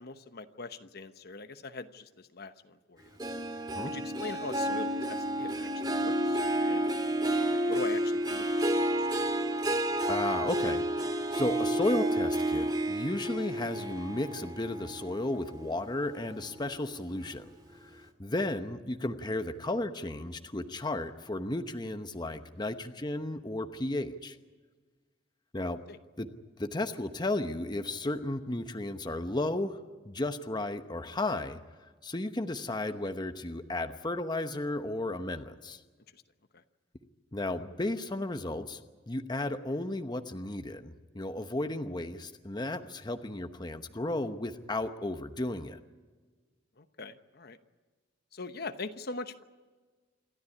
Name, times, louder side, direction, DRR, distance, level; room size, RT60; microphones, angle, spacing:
voice 1, 0.0-3.2 3.9-6.9 7.5-9.1 25.9-26.0 36.1-36.2 36.5-36.6 46.8-47.6 48.3-49.4, left 3 dB, 55° left, 9 dB, 1.0 m, -42 dB
Harp, 3.2-15.9 16.3-16.7 17.2-17.3, right 1 dB, 25° right, 1.9 m, -30 dB
voice 2, 10.1-17.5 17.8-24.4 25.5-25.8 26.2-26.3 26.6-31.6 32.0-35.8 37.3-38.8 39.1-45.8, left 2 dB, 25° left, 8 dB, 0.9 m, -34 dB
27.5 x 13.0 x 9.9 m, 1.4 s
head